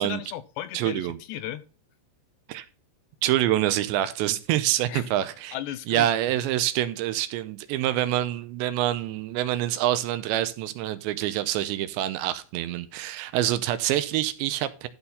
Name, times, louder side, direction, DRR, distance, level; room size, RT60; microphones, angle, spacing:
voice 1, 0.0-1.6 4.9-5.1 5.5-6.1, left 13 dB, 80° left, 2.7 m, -35 dB
voice 2, 0.7-1.2 2.5-2.7 3.2-5.6 5.9-14.9, right 13 dB, 80° right, 2.9 m, -26 dB
13.0 x 4.4 x 5.4 m
omnidirectional pair, 5.3 m